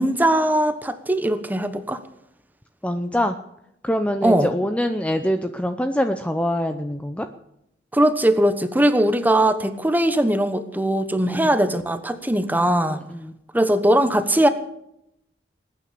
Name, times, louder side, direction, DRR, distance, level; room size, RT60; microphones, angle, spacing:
voice 1, 0.0-2.0 4.2-4.5 7.9-13.0 13.5-14.5, right 1 dB, 10° right, 10 dB, 1.2 m, -20 dB
voice 2, 2.8-3.4 3.8-7.3 11.2-11.5 13.1-13.3, equal, 5° left, 7 dB, 0.7 m, -24 dB
20.5 x 9.3 x 6.8 m, 0.79 s
head